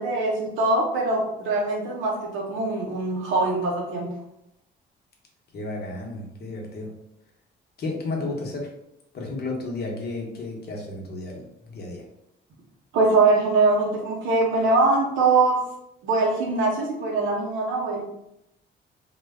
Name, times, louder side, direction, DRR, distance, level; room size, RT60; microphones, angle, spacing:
voice 1, 0.0-4.1 12.9-15.6 16.0-18.0, right 3 dB, 90° right, -1 dB, 0.7 m, -22 dB
voice 2, 5.5-6.9 7.8-8.7 9.1-12.0, left 2 dB, 55° left, 0 dB, 0.8 m, -32 dB
2.2 x 2.1 x 3.4 m, 0.82 s
cardioid pair, 90°, 20 cm